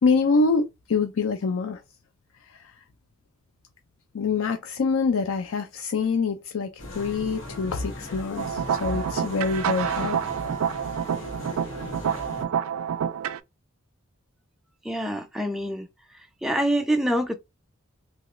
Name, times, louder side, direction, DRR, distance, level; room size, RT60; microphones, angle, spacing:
voice 1, 0.0-1.8 2.5-2.6 4.1-10.2, left 4 dB, 80° left, 0.4 m, -25 dB
sound 1, 6.8-12.4, left 2 dB, 60° left, 1.3 m, -38 dB
sound 2, 8.4-13.4, right 8 dB, 80° right, 0.3 m, -28 dB
voice 2, 14.8-15.9 16.4-17.3, right 1 dB, ahead, 0.4 m, -25 dB
2.9 x 2.3 x 3.0 m
head